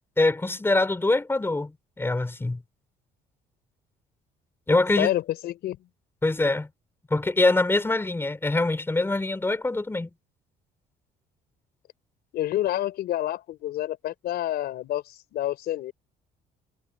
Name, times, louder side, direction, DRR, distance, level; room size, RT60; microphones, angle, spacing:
voice 1, 0.2-1.7 2.0-2.6 4.7-5.1 6.2-6.7 7.1-10.1, left 2 dB, 15° left, 5.3 m, -24 dB
voice 2, 5.0-5.8 12.3-15.9, left 13 dB, 70° left, 4.9 m, -28 dB
cardioid pair, 110°, 17 cm